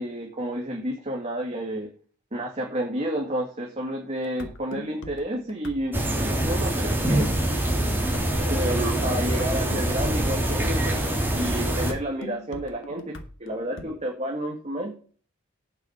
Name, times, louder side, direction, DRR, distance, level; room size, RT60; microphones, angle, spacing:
voice 1, 0.0-1.9 2.3-7.3 8.5-11.0 11.3-14.9, right 1 dB, 30° right, 0 dB, 2.3 m, -30 dB
sound 1, 4.2-13.8, left 1 dB, 65° left, 1.8 m, -41 dB
sound 2, 5.9-11.9, right 1 dB, 10° right, 3.1 m, -25 dB
9.1 x 6.3 x 7.3 m, 0.41 s
head